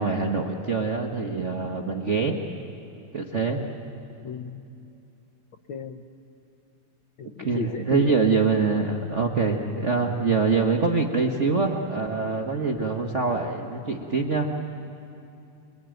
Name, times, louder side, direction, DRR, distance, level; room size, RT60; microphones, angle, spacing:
voice 1, 0.0-2.4 3.1-3.6 7.4-14.5, right 4 dB, 85° right, 3 dB, 0.6 m, -24 dB
voice 2, 4.2-4.6 5.7-6.1 7.2-8.3, left 7 dB, 80° left, 6 dB, 1.1 m, -34 dB
26.5 x 22.5 x 9.1 m, 2.7 s
omnidirectional pair, 3.4 m